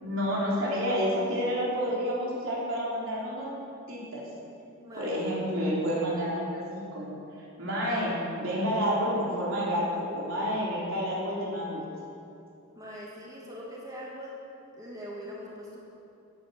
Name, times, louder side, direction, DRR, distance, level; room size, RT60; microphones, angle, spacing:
voice 1, 0.0-3.5 3.9-4.2 5.0-7.2 7.6-11.9, equal, 60° right, -6 dB, 3.9 m, -29 dB
voice 2, 4.8-5.2 12.7-14.3 14.8-15.9, equal, 15° right, -5 dB, 2.6 m, -42 dB
13.5 x 10.5 x 7.1 m, 2.6 s
head